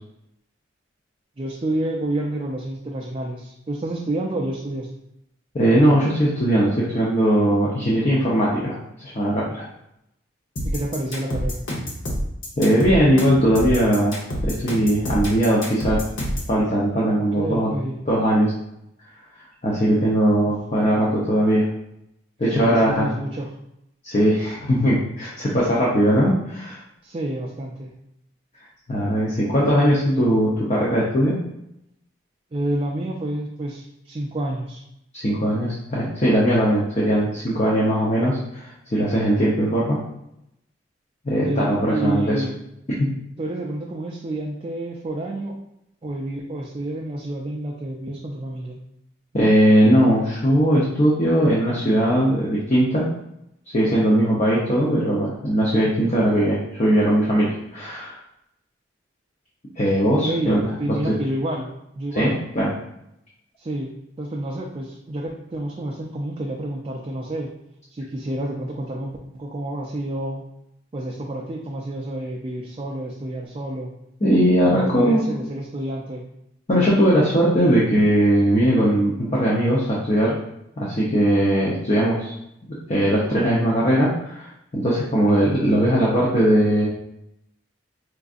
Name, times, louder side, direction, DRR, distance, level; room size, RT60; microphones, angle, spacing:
voice 1, 1.4-4.9 10.6-11.7 17.4-18.0 20.4-20.5 22.5-23.5 27.0-27.9 32.5-34.8 41.4-42.5 43.4-45.6 46.0-48.8 60.2-61.7 62.0-62.4 63.6-67.5 67.9-70.4 70.9-73.9 74.7-76.3, right 1 dB, 30° right, -2 dB, 0.3 m, -29 dB
voice 2, 5.5-9.6 12.6-14.2 14.4-16.0 16.5-17.7 18.1-18.5 19.6-21.7 22.4-23.1 24.0-26.8 28.9-31.4 35.1-40.0 41.2-42.4 43.0-43.1 49.3-53.1 53.7-58.2 59.8-60.9 62.1-62.7 74.2-75.3 76.7-80.4 80.8-82.3 82.6-86.9, equal, 35° left, -6 dB, 0.6 m, -19 dB
sound 1, 10.6-16.5, equal, 85° left, 0.9 m, -27 dB
4.6 x 2.5 x 2.4 m, 0.80 s
head